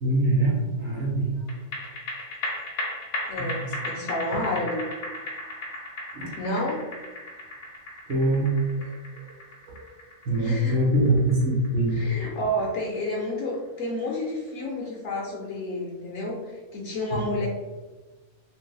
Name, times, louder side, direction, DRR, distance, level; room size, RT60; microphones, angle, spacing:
voice 1, 0.0-1.3 3.4-3.8 6.1-6.3 8.1-8.9 9.7-9.8 10.3-11.9 17.1-17.2, right 1 dB, 60° right, -3 dB, 0.9 m, -24 dB
sound 1, 1.5-14.1 14.5-14.6, left 1 dB, 80° left, 1.1 m, -36 dB
voice 2, 3.3-4.9 6.4-6.8 10.4-10.8 11.9-17.5, left 1 dB, 65° left, -2 dB, 0.8 m, -30 dB
3.1 x 2.6 x 2.3 m, 1.3 s
omnidirectional pair, 1.5 m